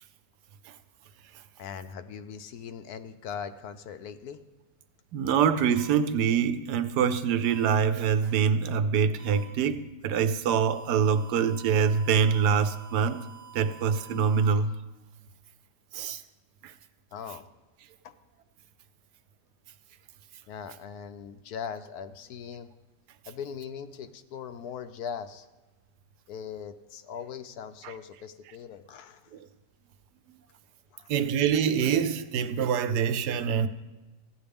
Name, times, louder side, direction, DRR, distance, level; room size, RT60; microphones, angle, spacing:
voice 1, 1.6-4.4 17.1-17.5 18.0-18.1 20.5-22.7 23.3-25.5 26.3-29.4 30.9-31.1, left 7 dB, 75° left, 1.0 m, -40 dB
voice 2, 5.1-13.3 13.5-14.7 15.9-16.2 16.6-16.7 27.8-27.9 31.1-33.7, right 7 dB, 75° right, 1.1 m, -25 dB
sound 1, 5.7-5.9 7.4-7.7 9.2-9.4 10.7-14.5, right 9 dB, 5° left, 3.8 m, -49 dB
15.5 x 9.5 x 3.5 m
omnidirectional pair, 1.8 m